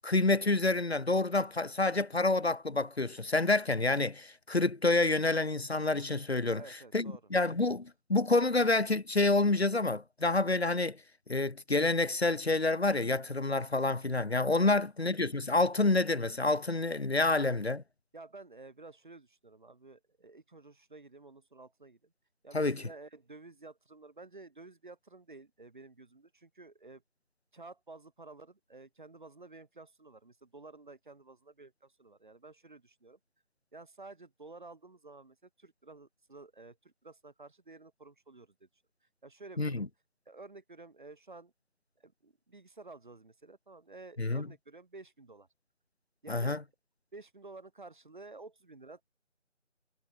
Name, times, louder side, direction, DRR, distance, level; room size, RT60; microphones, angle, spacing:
voice 1, 0.0-6.6 6.9-11.0 11.3-17.8 22.5-22.8 39.6-39.9 44.2-44.5 46.3-46.6, left 2 dB, 55° left, 2.8 m, -28 dB
voice 2, 6.5-7.2 14.6-14.7 18.1-22.1 22.4-27.0 27.5-33.2 33.7-38.7 39.2-39.8 40.3-41.5 42.0-45.5 46.2-46.6 47.1-49.0, right 3 dB, 40° right, 5.4 m, -52 dB
figure-of-eight pair, 175°, 37 cm